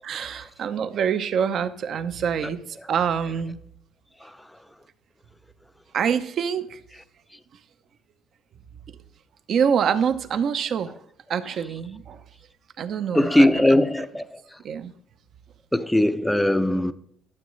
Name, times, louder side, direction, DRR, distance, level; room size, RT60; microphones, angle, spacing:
voice 1, 0.0-3.6 5.9-6.8 9.5-11.0 11.3-12.2 12.8-13.8 14.6-14.9, right 7 dB, 50° right, 0.6 m, -26 dB
voice 2, 13.1-14.6 15.7-16.9, left 1 dB, 5° left, 0.5 m, -21 dB
11.5 x 7.1 x 3.1 m
cardioid pair, 110°, 0 cm